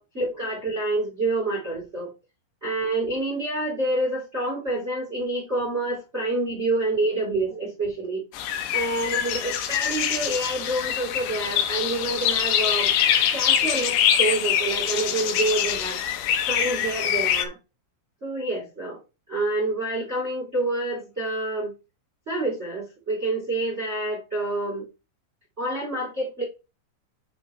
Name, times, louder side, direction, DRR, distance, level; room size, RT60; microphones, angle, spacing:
voice 1, 0.0-2.1 2.6-8.2 8.7-12.9 13.3-16.0 16.5-17.5 18.2-19.0 19.3-21.7 22.3-24.8 25.6-26.4, right 2 dB, 15° right, 2.9 m, -27 dB
sound 1, 8.3-17.4, left 9 dB, 75° left, 2.7 m, -24 dB
7.6 x 6.0 x 3.2 m
omnidirectional pair, 5.8 m